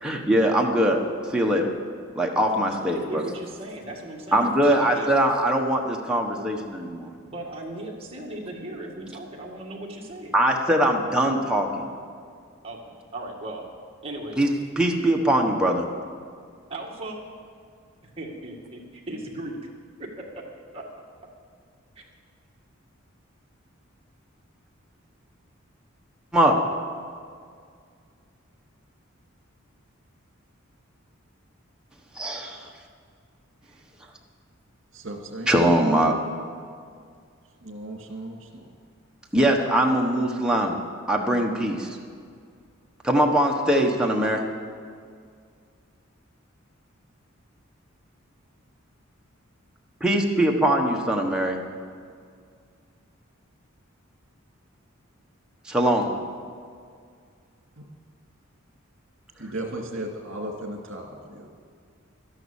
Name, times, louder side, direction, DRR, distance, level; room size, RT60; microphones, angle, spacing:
voice 1, 0.0-1.0 1.3-1.7 2.1-3.3 4.3-7.1 10.3-11.9 14.4-14.5 14.8-15.9 26.3-26.6 32.1-32.7 35.5-36.1 39.3-40.8 41.1-42.0 43.0-44.4 50.0-51.6 55.6-56.1, right 1 dB, 5° right, 0 dB, 1.2 m, -22 dB
voice 2, 2.6-5.2 7.2-10.4 12.6-13.7 14.0-14.4 16.7-17.3 18.2-19.7 20.2-20.4 20.7-20.8, right 1 dB, 30° right, -2 dB, 2.0 m, -37 dB
voice 3, 34.9-35.5 37.6-38.7 57.8-57.9 59.4-61.5, right 1 dB, 65° right, 1 dB, 2.4 m, -36 dB
12.5 x 10.5 x 7.2 m, 2.2 s
head